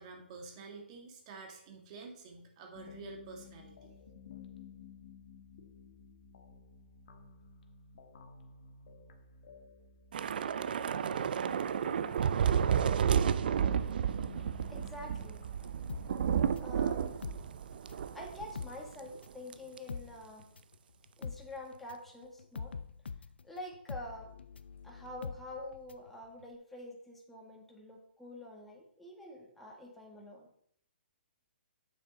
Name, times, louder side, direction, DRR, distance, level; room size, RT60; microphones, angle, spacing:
voice 1, 0.0-3.9, right 4 dB, 40° right, 2 dB, 1.6 m, -49 dB
sound 1, 2.7-16.1, left 5 dB, 55° left, 1.3 m, -55 dB
Thunder / Rain, 10.1-18.7 19.0-19.2 19.5-19.8, right 8 dB, 60° right, 0.6 m, -31 dB
voice 2, 14.7-15.4 16.6-17.1 18.1-20.5 21.2-22.7 23.4-24.4 24.8-30.5, left 1 dB, 5° left, -2 dB, 1.6 m, -47 dB
sound 2, 15.9-18.1 18.4-26.1 26.4-26.5, left 5 dB, 80° left, 0.6 m, -44 dB
8.8 x 6.8 x 3.9 m, 0.66 s
hypercardioid pair, 140°, 6 cm